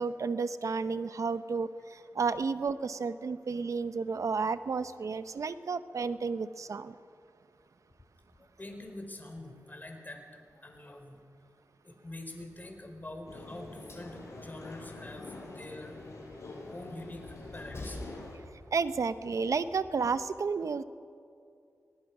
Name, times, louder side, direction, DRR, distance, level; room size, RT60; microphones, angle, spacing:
voice 1, 0.0-6.9 18.7-20.8, right 5 dB, 70° right, 13 dB, 0.8 m, -32 dB
voice 2, 8.4-11.2 11.8-16.2 16.7-18.5, left 1 dB, 35° left, 3 dB, 4.8 m, -45 dB
Train, 12.5-20.2, left 2 dB, 50° left, 5.9 m, -51 dB
sound 1, 13.3-18.4, left 2 dB, 75° left, 5.2 m, -46 dB
25.0 x 19.5 x 6.1 m, 2.4 s
cardioid pair, 45°, 6 cm